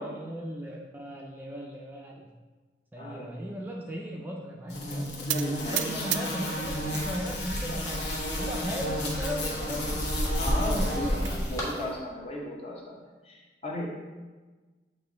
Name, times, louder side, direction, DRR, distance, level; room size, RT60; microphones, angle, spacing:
voice 1, 0.0-2.3 2.9-5.3 5.7-10.2 10.5-11.5, equal, 10° right, -2 dB, 0.4 m, -37 dB
voice 2, 3.0-3.6 5.3-6.0 8.6-8.7 10.4-13.9, left 1 dB, 30° left, -1 dB, 0.9 m, -35 dB
sound 1, 4.7-11.8, left 1 dB, 60° left, 1.0 m, -34 dB
sound 2, 5.3-7.1 7.5-8.1 8.6-8.8 9.0-9.1 9.5-9.6 10.7-11.4, right 13 dB, 85° right, 0.3 m, -35 dB
sound 3, 6.6-11.6, equal, 15° left, 1.4 m, -32 dB
7.9 x 3.0 x 3.9 m, 1.3 s
head